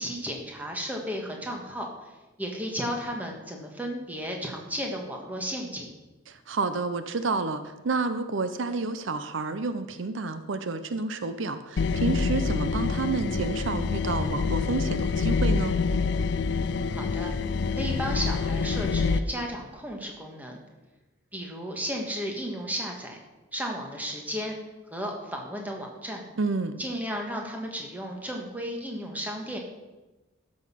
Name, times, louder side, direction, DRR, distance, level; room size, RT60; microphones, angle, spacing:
voice 1, 0.0-1.9 2.4-5.9 16.9-17.3 17.7-20.6 21.3-23.2 23.5-24.6 24.9-26.2 26.8-29.6, equal, 10° right, 1 dB, 1.6 m, -34 dB
voice 2, 6.3-15.8 26.4-26.8, right 3 dB, 75° right, 11 dB, 0.6 m, -30 dB
sound 1, 11.8-19.2, left 4 dB, 60° left, 0.4 m, -26 dB
13.0 x 6.4 x 5.7 m, 1.1 s
head